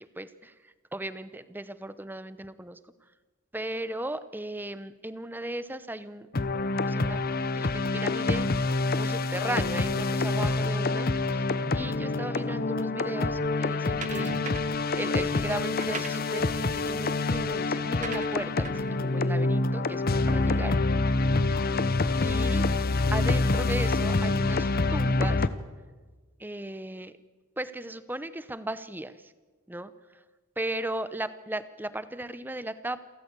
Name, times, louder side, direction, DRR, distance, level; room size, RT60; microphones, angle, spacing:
voice 1, 0.0-2.8 3.5-6.3 6.9-7.2 7.6-8.5 9.0-11.1 11.4-14.3 14.9-20.8 22.2-22.7 23.1-25.5 26.4-27.1 27.6-29.3 29.7-29.9 30.6-33.0, right 1 dB, 10° right, 14 dB, 0.8 m, -36 dB
sound 1, 6.3-25.5, left 3 dB, 45° left, 0.9 m, -26 dB
sound 2, 14.0-14.9 15.6-20.3, right 4 dB, 35° right, 1.2 m, -42 dB
28.5 x 14.0 x 8.2 m, 1.3 s
head